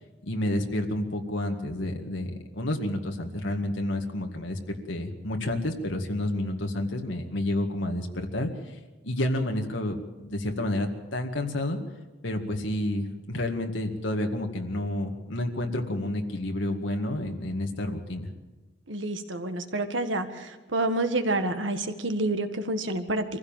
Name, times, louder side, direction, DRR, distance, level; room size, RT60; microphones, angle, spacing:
voice 1, 0.2-4.6 4.9-8.8 9.0-11.8 12.2-18.3, left 1 dB, 75° left, 3 dB, 2.0 m, -30 dB
voice 2, 18.9-23.2, right 2 dB, 75° right, 8 dB, 1.8 m, -28 dB
24.0 x 15.5 x 7.4 m, 1.2 s
head